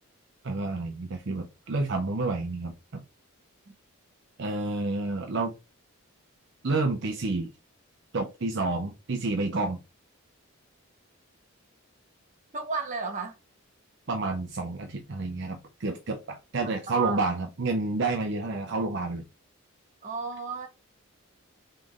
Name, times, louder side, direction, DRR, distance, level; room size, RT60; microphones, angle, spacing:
voice 1, 0.4-3.0 4.4-5.5 6.6-7.5 8.1-9.8 14.1-19.3, right 3 dB, 55° right, 0.5 m, -29 dB
voice 2, 12.5-13.3 16.9-17.2 20.0-20.7, right 5 dB, 35° right, 0.9 m, -33 dB
3.8 x 3.2 x 3.5 m
head